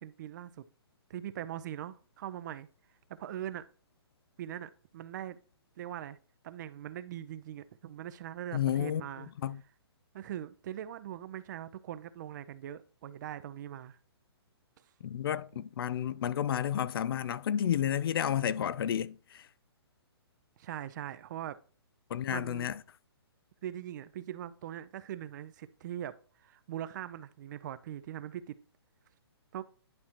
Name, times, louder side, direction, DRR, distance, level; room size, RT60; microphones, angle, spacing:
voice 1, 0.0-0.7 1.1-2.7 3.2-3.7 4.4-5.4 5.8-6.2 6.4-9.3 10.1-14.0 20.6-21.6 22.3-22.7 23.6-26.2 26.4-28.6 29.5-29.6, right 11 dB, 45° right, 0.6 m, -41 dB
voice 2, 8.5-9.0 9.4-9.6 15.0-19.1 22.1-22.7, left 10 dB, 60° left, 0.4 m, -31 dB
11.0 x 4.3 x 2.9 m
hypercardioid pair, 140°, 14 cm